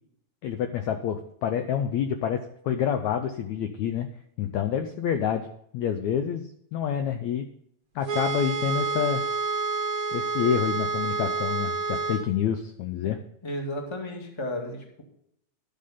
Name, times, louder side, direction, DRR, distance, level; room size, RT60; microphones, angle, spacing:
voice 1, 0.4-4.1 4.4-5.5 5.7-7.5 8.0-9.2 10.1-13.2, left 9 dB, 75° left, 7 dB, 1.7 m, -28 dB
sound 1, 8.0-12.3, right 3 dB, 45° right, 1.1 m, -28 dB
voice 2, 13.4-15.0, left 1 dB, 10° left, 2 dB, 1.3 m, -33 dB
11.5 x 7.6 x 5.7 m, 0.72 s
omnidirectional pair, 4.0 m